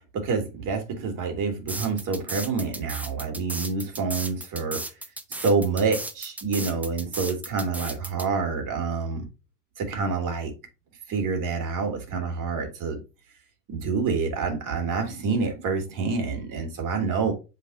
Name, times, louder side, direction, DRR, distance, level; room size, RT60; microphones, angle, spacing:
voice 1, 0.1-4.8 5.3-9.3 9.8-10.5 11.1-13.0 13.7-17.3, right 4 dB, 40° right, 2.6 m, -27 dB
sound 1, 1.7-8.3, right 2 dB, 5° right, 0.4 m, -35 dB
7.3 x 3.8 x 3.9 m
hypercardioid pair, 95°, 48 cm